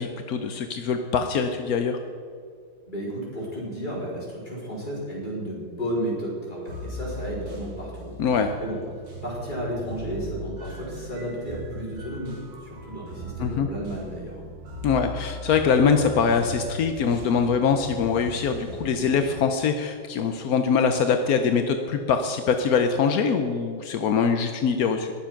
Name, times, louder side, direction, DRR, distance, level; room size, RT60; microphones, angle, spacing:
voice 1, 0.0-2.0 8.2-8.5 13.4-13.7 14.8-25.1, left 6 dB, 65° left, 6 dB, 0.9 m, -23 dB
voice 2, 2.9-8.1 8.6-8.8 9.2-12.3 12.6-14.4, right 1 dB, 20° left, -5 dB, 4.3 m, -33 dB
sound 1, 6.7-19.4, equal, 60° right, 2.6 m, -38 dB
20.5 x 7.2 x 5.9 m, 2.3 s
omnidirectional pair, 2.2 m